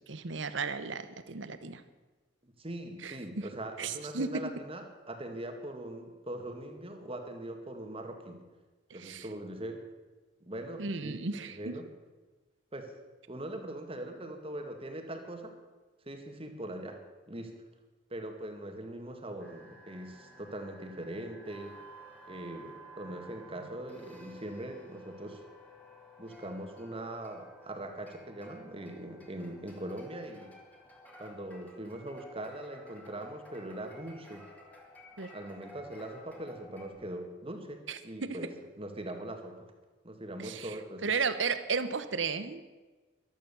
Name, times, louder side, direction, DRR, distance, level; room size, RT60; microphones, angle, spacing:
voice 1, 0.1-1.8 3.0-3.5 3.8-4.3 8.9-9.3 10.8-11.7 35.2-35.3 37.9-38.4 40.4-40.8 41.0-42.7, right 5 dB, 70° right, 11 dB, 1.0 m, -34 dB
voice 2, 2.4-8.4 8.9-9.8 10.4-11.2 11.5-11.9 12.7-12.9 13.3-15.5 16.1-17.0 17.3-17.5 18.1-21.8 22.3-25.4 26.2-30.5 31.2-34.5 35.3-38.5 38.8-39.5 40.0-41.0, right 1 dB, 30° right, 5 dB, 2.0 m, -41 dB
sound 1, 19.4-36.9, equal, 10° left, 2.5 m, -53 dB
14.5 x 12.0 x 7.0 m, 1.2 s
head